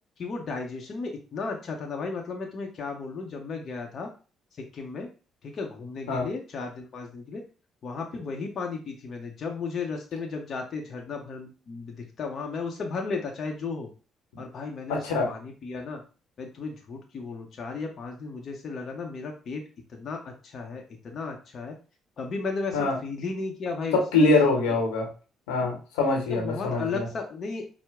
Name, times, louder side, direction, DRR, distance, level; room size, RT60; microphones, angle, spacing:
voice 1, 0.2-4.1 4.7-5.1 5.4-7.4 7.8-13.9 14.4-16.0 16.4-19.6 19.9-21.8 22.2-24.0 24.7-24.8 26.3-27.6, left 4 dB, 55° left, 1 dB, 0.7 m, -34 dB
voice 2, 14.9-15.3 22.7-23.0 23.9-25.1 25.5-27.1, left 3 dB, 80° left, 2 dB, 0.9 m, -24 dB
4.5 x 2.1 x 3.5 m, 0.35 s
hypercardioid pair, 50°, 0 cm